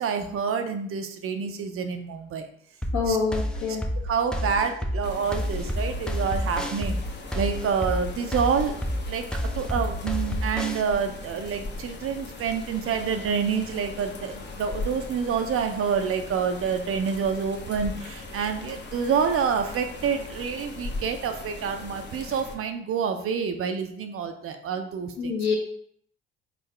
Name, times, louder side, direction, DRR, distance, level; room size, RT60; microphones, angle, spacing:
voice 1, 0.0-2.5 3.1-3.2 3.7-3.8 4.0-7.0 7.3-8.8 9.1-9.3 9.5-25.4, right 6 dB, 40° right, 6 dB, 0.6 m, -28 dB
sound 1, 2.8-10.8, equal, ahead, 0.5 m, -29 dB
voice 2, 2.9-3.8 25.2-25.5, left 5 dB, 55° left, -1 dB, 1.4 m, -26 dB
sound 2, 5.0-22.6, left 2 dB, 35° left, 0.9 m, -39 dB
4.1 x 3.7 x 3.2 m, 0.66 s
figure-of-eight pair, 50°, 33 cm